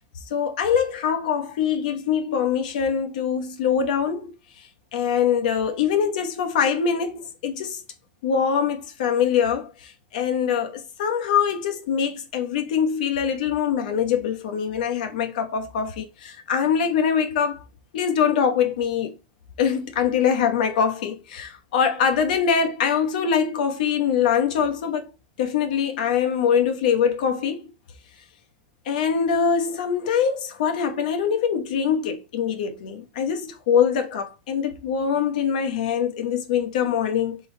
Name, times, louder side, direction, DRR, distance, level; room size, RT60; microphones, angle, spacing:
voice 1, 0.3-4.3 4.9-7.8 8.2-17.6 17.9-19.1 19.6-25.1 25.4-27.7 28.9-37.4, left 7 dB, 55° left, 1.0 m, -23 dB
3.8 x 3.1 x 4.3 m
supercardioid pair, 170°, 5 cm